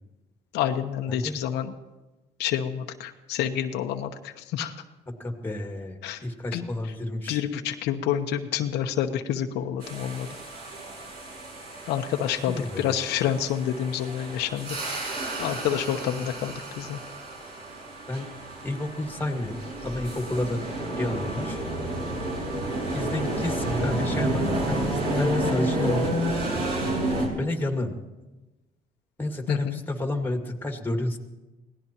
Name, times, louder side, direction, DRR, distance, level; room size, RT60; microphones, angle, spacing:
voice 1, 0.5-1.7 2.4-4.7 6.0-6.2 6.5-6.9 7.3-10.3 11.9-14.8 15.4-17.0 29.5-29.8, left 10 dB, 85° left, 5 dB, 1.0 m, -28 dB
voice 2, 1.1-1.4 5.2-7.4 12.5-12.9 18.1-18.3 18.6-19.6 19.8-20.6 21.0-21.6 22.9-26.2 27.4-28.0 29.2-31.2, left 1 dB, 10° left, 4 dB, 2.0 m, -30 dB
sound 1, 9.8-27.3, right 1 dB, 65° right, 6.8 m, -30 dB
25.0 x 17.5 x 3.0 m, 1.1 s
cardioid pair, 110°, 17 cm